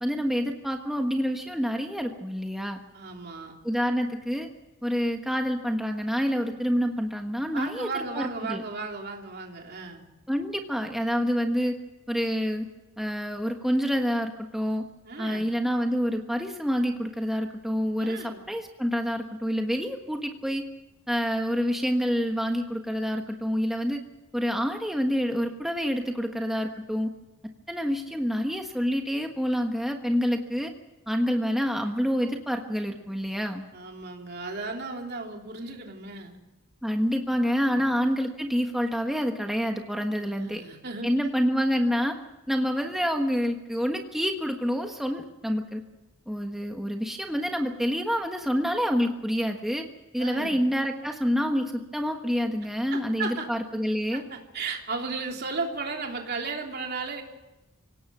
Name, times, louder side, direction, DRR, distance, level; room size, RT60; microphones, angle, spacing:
voice 1, 0.0-2.8 3.6-4.5 4.8-8.6 10.3-11.8 12.1-12.7 13.0-14.8 15.2-20.6 21.1-24.0 24.3-27.1 27.7-30.7 31.1-33.7 36.8-40.6 41.0-42.2 42.5-45.8 46.3-49.9 50.1-54.2, equal, ahead, 3 dB, 1.4 m, -27 dB
voice 2, 2.9-3.5 7.5-10.0 15.0-15.5 18.0-18.4 33.7-36.4 37.7-37.9 40.1-41.1 50.2-50.6 52.9-53.5 54.1-57.2, right 4 dB, 45° right, 2 dB, 3.1 m, -35 dB
25.5 x 17.5 x 6.2 m, 1.0 s
head